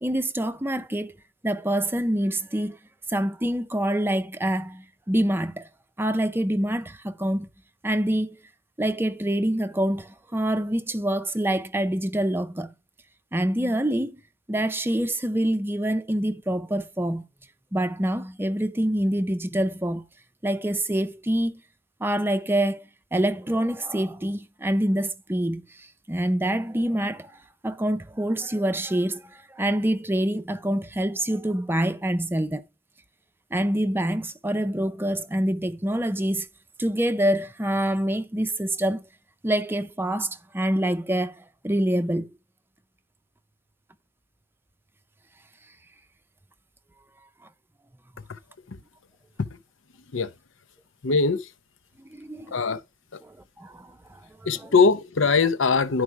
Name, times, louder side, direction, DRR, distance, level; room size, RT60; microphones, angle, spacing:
voice 1, 0.0-1.1 1.4-2.8 3.1-5.7 6.0-7.5 7.8-8.4 8.8-12.7 13.3-14.2 14.5-17.3 17.7-20.0 20.4-21.6 22.0-22.9 23.1-27.3 27.6-32.6 33.5-36.5 36.8-39.0 39.4-42.3 52.1-52.6 53.2-54.7, right 1 dB, 10° right, 0.5 m, -26 dB
voice 2, 51.0-51.4 52.5-52.8 54.5-56.0, left 4 dB, 90° left, 0.8 m, -21 dB
11.0 x 4.7 x 4.7 m
head